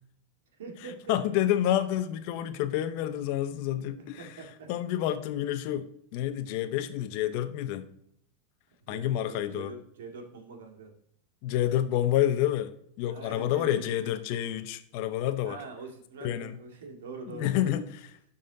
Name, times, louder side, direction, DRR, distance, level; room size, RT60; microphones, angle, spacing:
voice 1, 0.6-1.2 4.2-4.7 8.9-10.9 13.1-14.1 15.4-17.8, right 3 dB, 75° right, 2 dB, 2.0 m, -43 dB
voice 2, 1.1-4.3 4.7-5.9 6.1-7.9 8.9-9.7 11.4-12.7 13.0-15.6 16.2-16.6 17.3-17.9, left 12 dB, 60° left, 10 dB, 0.8 m, -28 dB
12.0 x 4.2 x 3.9 m, 0.71 s
hypercardioid pair, 100°, 0 cm